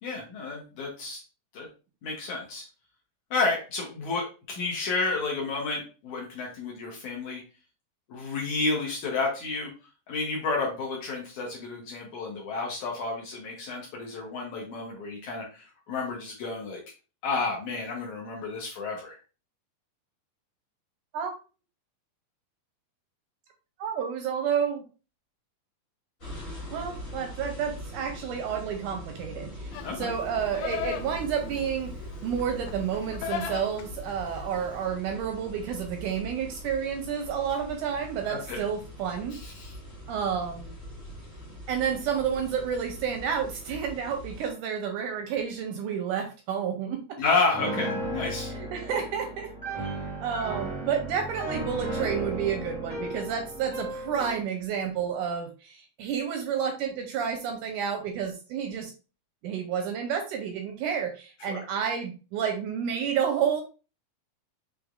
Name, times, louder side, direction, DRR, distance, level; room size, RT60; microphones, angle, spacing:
voice 1, 0.0-1.2 1.5-1.7 2.0-2.6 3.3-7.4 8.1-9.7 10.1-16.8 17.2-19.2 29.8-30.1 38.3-38.6 39.4-39.7 47.2-48.5 61.5-61.6, left 3 dB, 65° left, -2 dB, 2.2 m, -31 dB
voice 2, 23.8-24.8 26.7-31.9 32.2-39.4 40.1-40.7 41.7-47.2 48.5-49.5 49.8-49.9 50.2-58.9 59.4-63.6, right 7 dB, 80° right, 4 dB, 1.9 m, -30 dB
sound 1, 26.2-44.5, equal, 35° left, 1.1 m, -42 dB
Livestock farm animals working animals, 29.7-34.9, left 8 dB, 85° left, 2.2 m, -38 dB
Piano, 47.5-54.5, right 1 dB, 5° right, 1.1 m, -34 dB
6.4 x 3.2 x 2.3 m, 0.33 s
omnidirectional pair, 4.1 m